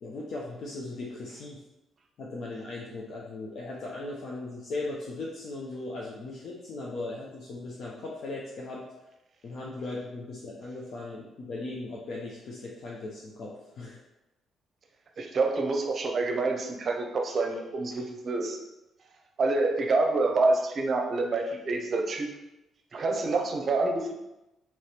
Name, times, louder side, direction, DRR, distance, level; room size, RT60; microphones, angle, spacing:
voice 1, 0.0-1.6 2.2-8.8 9.4-14.0, left 2 dB, 65° left, -4 dB, 0.7 m, -38 dB
voice 2, 15.2-18.6 19.4-22.3 22.9-24.1, right 3 dB, 50° right, 3 dB, 0.6 m, -27 dB
3.2 x 3.0 x 4.3 m, 0.97 s
cardioid pair, 90°, 0 cm